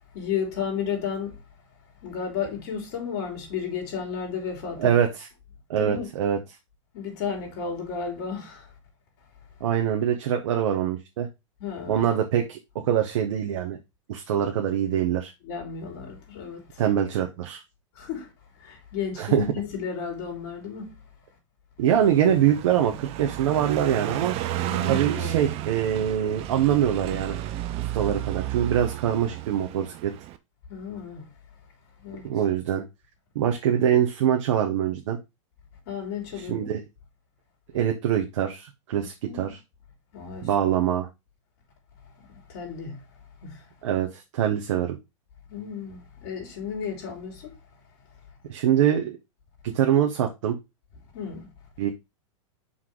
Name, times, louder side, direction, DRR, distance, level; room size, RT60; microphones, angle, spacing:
voice 1, 0.1-1.4 2.0-4.9 5.7-6.1 6.9-8.7 11.6-12.1 15.4-16.8 17.9-20.9 24.7-25.4 28.0-28.1 30.7-31.3 32.0-32.3 35.8-36.7 39.2-39.5 40.1-40.5 42.2-43.0 43.4-43.7 45.5-47.5 51.1-51.5, left 6 dB, 55° left, 3.4 m, -33 dB
voice 2, 4.8-5.3 5.7-6.4 9.6-11.3 11.9-13.8 14.1-15.3 16.8-17.6 19.2-19.4 21.8-24.3 24.9-27.4 27.8-30.1 32.2-32.8 33.3-35.2 36.5-36.8 37.7-39.6 40.4-41.1 43.8-45.0 48.5-49.2 49.6-50.6 51.8-51.9, right 10 dB, 65° right, 1.2 m, -24 dB
Car passing by, 21.9-30.4, right 14 dB, 40° right, 0.8 m, -32 dB
5.7 x 3.8 x 4.8 m
hypercardioid pair, 120°, 16 cm